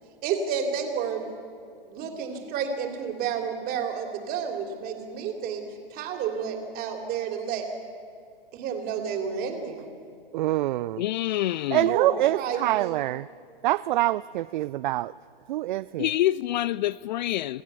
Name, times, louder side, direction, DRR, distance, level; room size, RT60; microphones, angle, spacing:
voice 1, 0.2-1.2 1.9-5.6 5.9-7.7 8.5-9.8 11.8-13.0, right 7 dB, 30° right, 3.1 m, -30 dB
voice 2, 10.3-11.0 11.7-13.3 13.6-15.1 15.5-16.1, right 16 dB, 55° right, 0.4 m, -25 dB
voice 3, 11.0-11.9 16.0-17.6, left 14 dB, 50° left, 0.4 m, -26 dB
27.5 x 15.0 x 6.9 m
hypercardioid pair, 130°, 30 cm